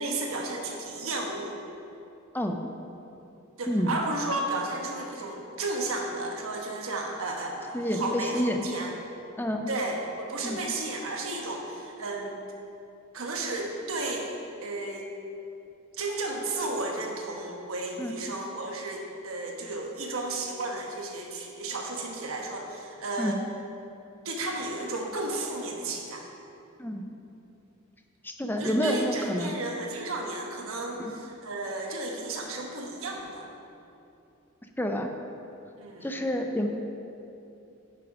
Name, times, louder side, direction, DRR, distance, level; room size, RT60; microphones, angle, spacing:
voice 1, 0.0-1.5 3.6-8.9 9.7-12.4 13.1-14.3 14.6-15.1 15.9-23.4 24.2-26.2 28.6-33.5 35.8-36.1, right 2 dB, 85° right, 0 dB, 1.2 m, -33 dB
voice 2, 7.7-8.6 9.4-9.6 10.4-10.6 18.0-18.1 23.2-23.4 26.8-27.0 28.2-29.5 31.0-31.1 34.8-35.1 36.0-36.7, equal, 10° left, 4 dB, 0.6 m, -28 dB
10.0 x 6.8 x 5.0 m, 2.8 s
head